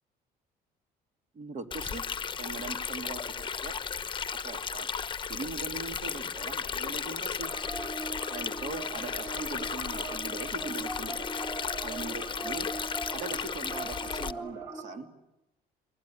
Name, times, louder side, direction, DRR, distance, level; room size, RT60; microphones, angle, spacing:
voice 1, 1.3-2.0 2.4-3.7 4.4-4.9 5.3-7.5 8.2-11.3 11.8-12.7 13.1-15.1, right 4 dB, 45° right, 6 dB, 3.3 m, -41 dB
Stream, 1.7-14.3, left 6 dB, 30° left, 1.0 m, -35 dB
sound 1, 7.4-14.8, right 2 dB, 20° right, 5.7 m, -40 dB
28.5 x 21.0 x 9.0 m, 0.91 s
cardioid pair, 110°, 17 cm